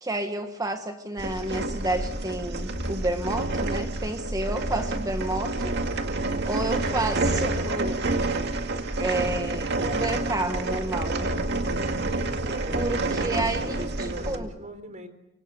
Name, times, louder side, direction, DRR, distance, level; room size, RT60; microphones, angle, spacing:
voice 1, 0.0-5.8 6.4-8.0 9.0-11.3 12.7-13.9 14.3-14.5, right 2 dB, 15° right, 7 dB, 1.4 m, -30 dB
sound 1, 1.2-14.4, right 2 dB, 55° right, 2.2 m, -28 dB
voice 2, 12.5-15.1, right 1 dB, 35° right, 9 dB, 4.0 m, -41 dB
25.0 x 25.0 x 8.3 m, 0.86 s
head